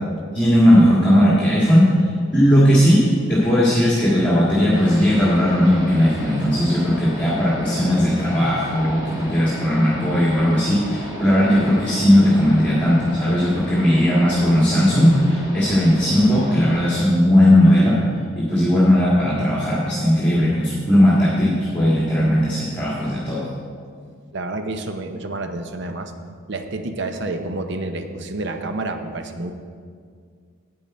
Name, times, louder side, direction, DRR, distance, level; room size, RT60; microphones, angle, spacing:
voice 1, 0.3-1.9 2.3-3.0 3.3-18.0 18.4-23.5, equal, 5° left, -9 dB, 1.9 m, -17 dB
sound 1, 4.7-17.0, equal, 15° right, 1.5 m, -34 dB
voice 2, 24.3-26.1 26.5-29.5, right 2 dB, 55° right, 7 dB, 0.7 m, -29 dB
10.5 x 8.8 x 4.3 m, 2.1 s
head